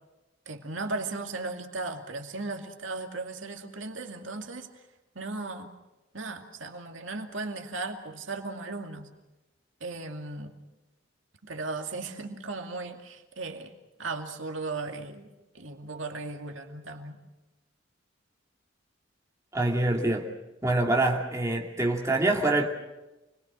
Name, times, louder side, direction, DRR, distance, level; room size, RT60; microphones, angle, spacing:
voice 1, 0.5-4.8 5.1-5.7 6.1-9.1 9.8-10.6 11.4-13.7 14.0-15.3 15.5-17.2, right 3 dB, 80° right, 4 dB, 2.4 m, -36 dB
voice 2, 19.5-20.3 20.6-22.7, right 2 dB, 15° right, 0 dB, 2.7 m, -25 dB
29.0 x 22.0 x 6.3 m, 1.0 s
head